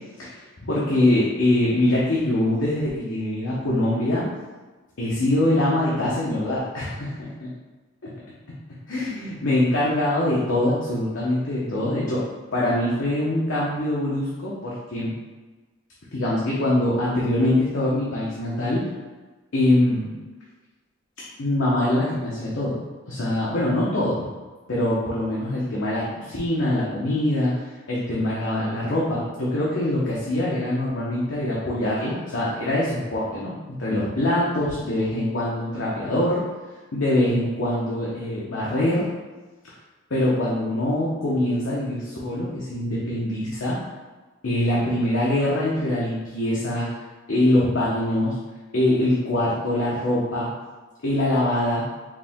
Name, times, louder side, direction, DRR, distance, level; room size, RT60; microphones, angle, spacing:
voice 1, 0.2-4.2 5.0-7.5 8.0-8.1 8.9-12.2 12.5-15.1 16.1-18.8 19.5-20.1 21.4-22.8 23.1-24.3 24.7-36.4 36.9-39.1 40.1-43.8 44.4-47.0 47.3-48.3 48.7-50.5 51.0-51.8, left 1 dB, 75° left, -7 dB, 0.9 m, -23 dB
4.8 x 2.8 x 3.6 m, 1.3 s
head